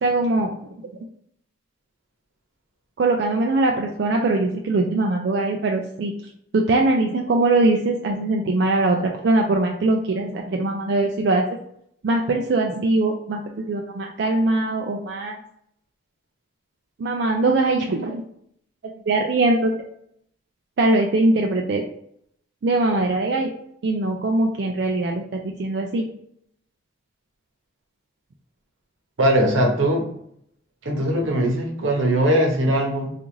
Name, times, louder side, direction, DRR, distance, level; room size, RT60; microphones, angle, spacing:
voice 1, 0.0-0.8 3.0-11.6 12.0-15.4 17.0-18.2 19.1-19.7 20.8-21.8 22.6-23.5 23.8-26.1, right 2 dB, 55° right, 1 dB, 0.3 m, -21 dB
voice 2, 29.2-30.0 30.8-33.1, right 1 dB, 85° right, 2 dB, 0.9 m, -20 dB
3.7 x 2.5 x 3.0 m, 0.70 s
head